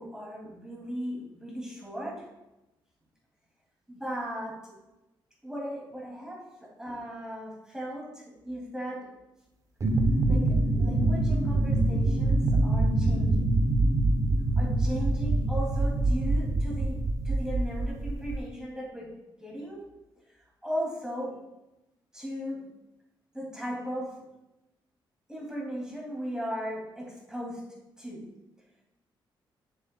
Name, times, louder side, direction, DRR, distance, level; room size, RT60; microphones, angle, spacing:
voice 1, 0.0-2.3 3.9-4.6 5.4-9.1 10.3-13.6 14.6-19.1 19.4-19.8 20.6-21.4 22.1-22.6 23.3-24.1 25.3-27.6 28.0-28.2, equal, 5° right, -4 dB, 2.4 m, -37 dB
sound 1, 9.8-18.4, right 2 dB, 35° right, 0.7 m, -25 dB
7.5 x 7.3 x 2.2 m, 0.95 s
cardioid pair, 95°, 9 cm